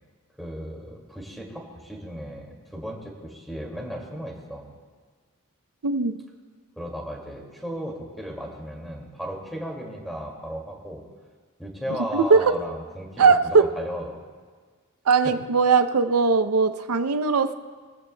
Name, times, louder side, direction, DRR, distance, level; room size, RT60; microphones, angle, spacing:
voice 1, 0.4-4.7 6.8-11.0 11.6-14.2 15.2-15.3, equal, ahead, -1 dB, 2.2 m, -35 dB
voice 2, 5.8-6.2 12.1-12.4 13.2-13.7 15.1-17.5, right 4 dB, 80° right, 9 dB, 0.6 m, -19 dB
22.5 x 15.0 x 2.2 m, 1.5 s
head